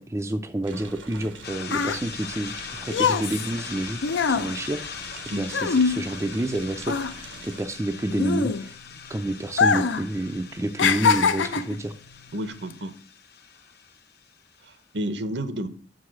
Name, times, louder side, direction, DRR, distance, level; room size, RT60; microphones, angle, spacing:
voice 1, 0.0-4.0 4.3-5.1 5.4-8.8 9.1-11.9, right 1 dB, 15° right, 7 dB, 0.4 m, -29 dB
sound 1, 0.6-7.6, right 3 dB, 90° right, 1.1 m, -44 dB
sound 2, 1.2-6.5 6.8-9.0 9.5-10.1 10.3-11.8 12.5-12.7, left 5 dB, 80° left, 0.5 m, -24 dB
sound 3, 1.4-14.8, left 7 dB, 55° left, 0.9 m, -41 dB
voice 2, 12.3-13.0 14.6-15.7, right 1 dB, 65° right, 11 dB, 0.7 m, -31 dB
6.5 x 4.8 x 6.1 m, 0.43 s
head